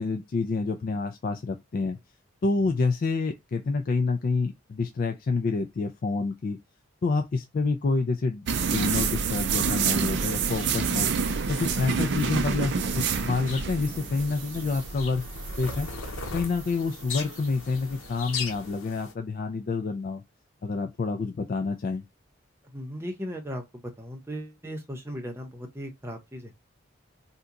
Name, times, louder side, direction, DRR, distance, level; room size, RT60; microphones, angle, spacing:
voice 1, 0.0-2.0 2.4-6.6 7.0-11.1 11.5-15.3 15.6-15.9 16.3-20.2 20.6-22.0, left 4 dB, 45° left, 0.3 m, -28 dB
sound 1, 8.5-18.6, right 5 dB, 55° right, 0.4 m, -29 dB
sound 2, 10.4-19.1, left 4 dB, 90° left, 0.8 m, -40 dB
voice 2, 22.7-23.6 24.0-26.5, equal, 10° right, 0.7 m, -37 dB
2.8 x 2.2 x 3.6 m
head